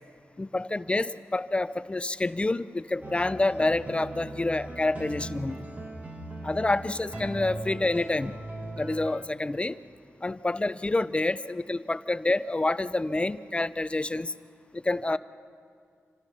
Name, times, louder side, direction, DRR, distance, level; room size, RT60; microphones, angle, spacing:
voice 1, 0.4-5.7 6.4-8.4 8.8-9.8 10.2-14.3 14.7-15.2, left 2 dB, 25° left, 14 dB, 0.5 m, -28 dB
sound 1, 3.0-9.2, right 1 dB, 30° right, 1.9 m, -39 dB
27.0 x 19.0 x 5.7 m, 2.2 s
wide cardioid pair, 85°, 5 cm